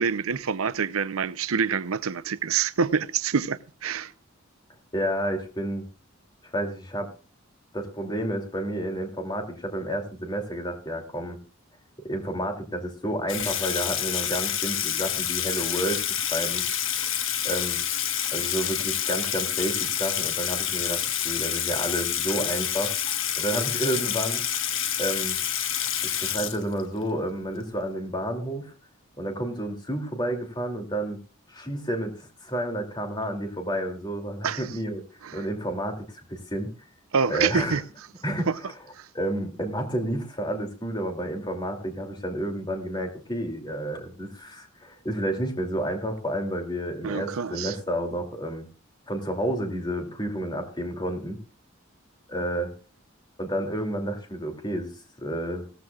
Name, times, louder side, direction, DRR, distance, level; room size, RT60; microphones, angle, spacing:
voice 1, 0.0-4.1 34.4-34.7 35.2-35.5 37.1-37.8 38.5-38.6 38.9-39.1 47.0-47.8, right 6 dB, 90° right, 0.6 m, -26 dB
voice 2, 4.9-5.8 6.5-7.1 7.7-11.4 12.0-16.6 17.4-17.8 18.3-22.9 23.4-24.4 25.0-25.4 26.0-28.7 29.2-31.2 31.5-35.0 35.3-36.7 37.3-37.8 38.2-38.5 39.1-48.7 49.1-51.4 52.3-52.7 53.4-54.9 55.2-55.6, right 1 dB, 20° left, 2.7 m, -30 dB
Water tap faucet / Sink (filling or washing), 13.3-27.0, left 9 dB, 65° left, 1.4 m, -28 dB
17.5 x 14.0 x 2.4 m
head